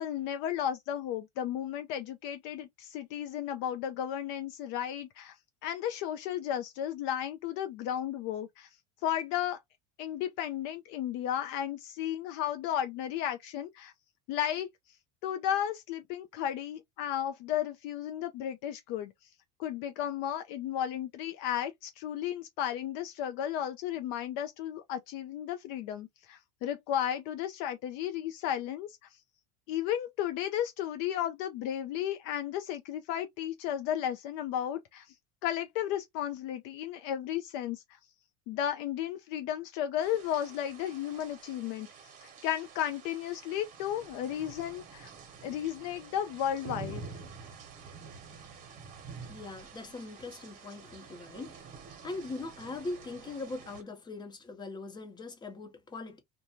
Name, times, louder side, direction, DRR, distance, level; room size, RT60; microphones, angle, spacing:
voice 1, 0.0-5.4 5.6-8.7 9.0-9.6 10.0-13.9 14.3-14.7 15.2-19.1 19.6-28.9 29.7-35.1 35.4-38.0 38.5-41.9 42.2-45.1 45.4-47.0, left 10 dB, 60° left, 0.5 m, -34 dB
sound 1, 40.0-53.8, right 5 dB, 40° right, 1.0 m, -48 dB
voice 2, 49.3-51.5 52.0-56.2, left 3 dB, 20° left, 1.0 m, -41 dB
2.5 x 2.2 x 2.9 m
supercardioid pair, 125°, 21 cm